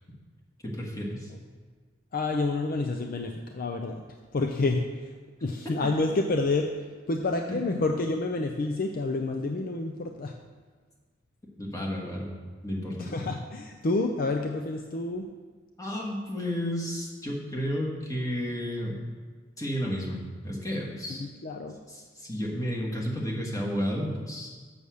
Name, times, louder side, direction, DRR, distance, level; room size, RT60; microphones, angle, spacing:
voice 1, 0.6-1.3 11.6-12.3 12.6-13.1 15.8-18.9 19.6-21.2 21.9-24.5, equal, 20° left, -3 dB, 1.6 m, -32 dB
voice 2, 2.1-4.0 4.3-4.9 5.4-6.7 7.1-10.3 13.0-15.3 21.2-21.7, left 3 dB, 50° left, 4 dB, 0.5 m, -28 dB
7.0 x 6.9 x 6.3 m, 1.5 s
head